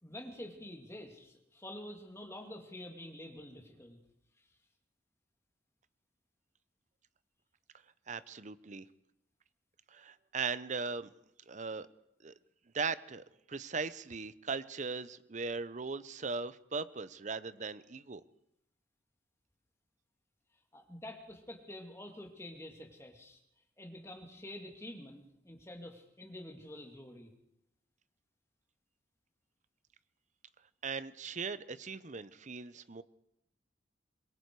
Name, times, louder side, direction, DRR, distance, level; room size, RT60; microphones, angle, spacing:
voice 1, 0.0-4.0 20.7-23.4 23.8-27.3, left 1 dB, 15° left, 2 dB, 2.5 m, -48 dB
voice 2, 8.1-8.8 9.9-11.1 11.5-11.9 12.2-12.3 12.7-18.2 30.8-33.0, right 4 dB, 40° right, 15 dB, 0.7 m, -39 dB
24.5 x 22.0 x 4.8 m, 0.82 s
head